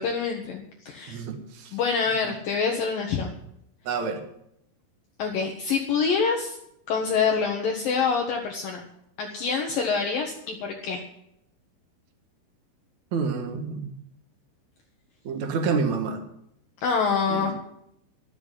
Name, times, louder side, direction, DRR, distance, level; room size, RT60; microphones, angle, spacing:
voice 1, 0.0-1.2 1.7-3.3 5.2-6.6 6.9-8.8 9.2-11.0 16.8-17.5, left 5 dB, 65° left, 1 dB, 2.5 m, -26 dB
voice 2, 1.1-1.8 2.2-2.3 3.8-4.2 13.1-13.9 15.2-16.2 17.3-17.5, right 5 dB, 55° right, 6 dB, 2.3 m, -28 dB
12.0 x 7.9 x 9.9 m, 0.77 s
omnidirectional pair, 5.1 m